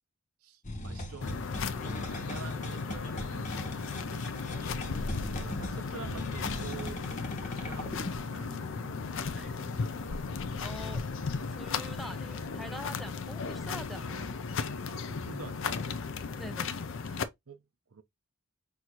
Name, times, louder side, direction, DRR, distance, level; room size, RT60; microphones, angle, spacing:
voice 1, 0.4-1.5 2.1-4.0 4.7-4.9 5.2-8.6 14.9-15.9 17.1-17.6 17.9-18.0, right 5 dB, 70° right, 0.6 m, -48 dB
sound 1, 0.6-8.2, left 1 dB, 35° left, 1.0 m, -40 dB
sound 2, 1.2-17.2, left 5 dB, 60° left, 0.5 m, -36 dB
sound 3, 1.8-15.9, left 1 dB, 85° right, 2.1 m, -51 dB
voice 2, 9.3-9.7 10.6-11.0 11.5-14.3 16.4-16.7, equal, ahead, 0.7 m, -44 dB
6.0 x 2.7 x 2.9 m
head